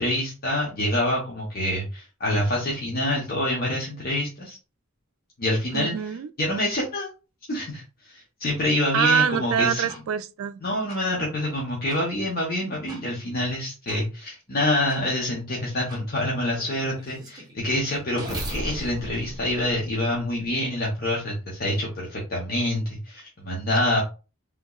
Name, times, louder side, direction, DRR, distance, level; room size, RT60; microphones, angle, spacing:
voice 1, 0.0-4.6 5.4-5.9 6.4-7.1 7.5-9.9 10.6-24.0, left 1 dB, 45° left, 0.9 m, -26 dB
voice 2, 5.7-6.3 8.9-10.6, right 8 dB, 80° right, 0.3 m, -24 dB
sound 1, 9.9-10.0 10.9-11.0 11.9-12.0 12.9-13.0 13.9-14.0 14.9-15.0 15.9-16.0 16.6-20.5, right 1 dB, 20° right, 1.0 m, -37 dB
3.6 x 2.8 x 2.3 m
head